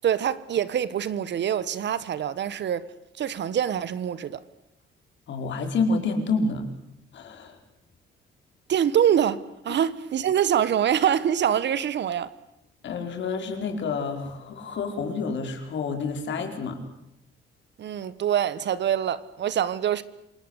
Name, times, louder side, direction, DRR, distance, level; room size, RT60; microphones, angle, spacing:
voice 1, 0.0-2.8 3.2-4.4 8.7-12.3 17.8-20.0, right 9 dB, 60° right, 1.4 m, -25 dB
voice 2, 5.3-6.7 7.1-7.6 9.7-9.8 12.8-16.8, left 4 dB, 65° left, 5.0 m, -28 dB
28.0 x 19.0 x 8.2 m
cardioid pair, 90°, 20 cm